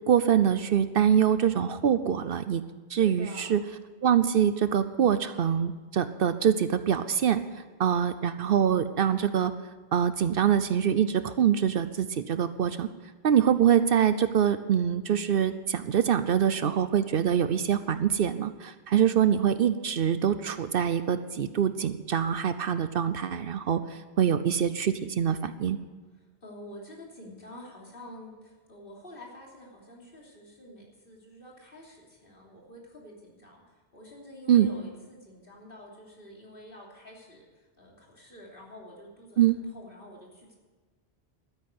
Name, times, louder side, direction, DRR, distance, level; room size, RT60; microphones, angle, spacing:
voice 1, 0.1-2.6 2.9-3.6 4.0-7.4 7.8-9.5 9.9-12.9 13.2-25.8 34.5-34.7 39.4-39.6, right 9 dB, 65° right, 12 dB, 0.8 m, -24 dB
voice 2, 3.0-3.5 26.1-40.6, left 1 dB, 55° left, -2 dB, 3.3 m, -48 dB
12.5 x 9.9 x 7.8 m, 1.3 s
omnidirectional pair, 1.1 m